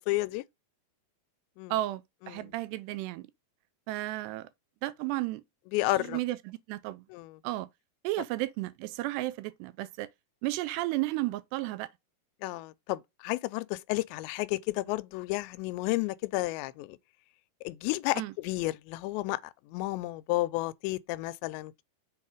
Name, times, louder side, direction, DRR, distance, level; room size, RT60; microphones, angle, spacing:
voice 1, 0.1-0.4 1.6-1.7 2.3-2.5 5.7-6.2 7.1-7.4 12.4-17.0 17.6-19.4 19.7-21.8, left 19 dB, 90° left, 2.9 m, -32 dB
voice 2, 1.7-3.3 3.9-4.5 4.8-5.4 6.0-7.1 7.4-7.7 8.0-10.1 10.4-11.9 18.2-18.3, right 17 dB, 80° right, 2.6 m, -33 dB
7.0 x 4.5 x 4.8 m
omnidirectional pair, 5.0 m